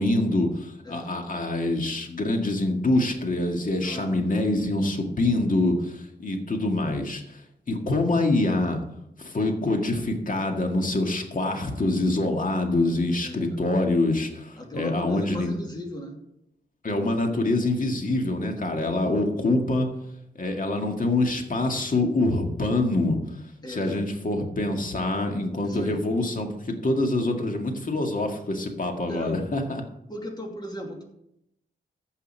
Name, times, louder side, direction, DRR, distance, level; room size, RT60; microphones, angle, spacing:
voice 1, 0.0-7.4 7.7-8.8 9.2-15.6 16.8-19.9 20.4-23.4 23.7-29.8, left 2 dB, 45° left, 3 dB, 2.0 m, -25 dB
voice 2, 3.8-4.3 13.2-13.6 14.6-16.3 23.6-24.0 25.6-26.0 29.1-29.4 30.1-31.0, left 1 dB, 20° left, 1 dB, 2.6 m, -37 dB
15.0 x 5.6 x 5.6 m, 0.79 s
wide cardioid pair, 85°, 19 cm